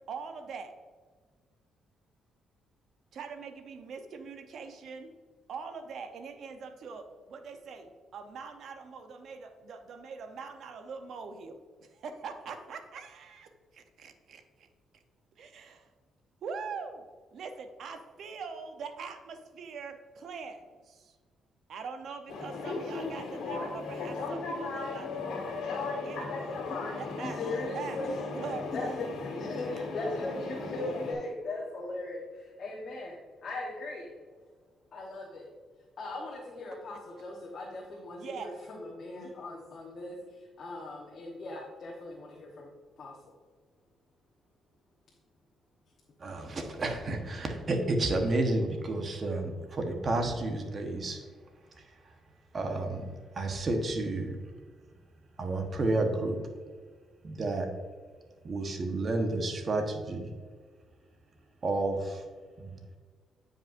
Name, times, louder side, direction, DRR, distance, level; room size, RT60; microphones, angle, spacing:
voice 1, 0.1-0.7 3.1-5.1 5.5-14.7 15.4-15.9 16.4-17.0 17.3-21.1 21.7-25.5 26.0-26.6 27.0-27.4 27.7-28.0 28.3-28.8 38.1-38.6, right 5 dB, 65° right, 7 dB, 0.8 m, -43 dB
sound 1, 22.3-31.1, left 3 dB, 75° left, 1.7 m, -36 dB
voice 2, 27.2-28.2 28.7-34.1 34.9-35.5 36.0-42.7 43.0-43.1, left 2 dB, 50° left, -2 dB, 1.1 m, -39 dB
voice 3, 46.2-51.2 52.5-54.4 55.4-56.4 57.2-57.7 58.4-60.3 61.6-62.2 62.6-62.7, right 2 dB, 40° right, 4 dB, 1.1 m, -31 dB
9.1 x 5.3 x 2.6 m, 1.5 s
cardioid pair, 90°, 0 cm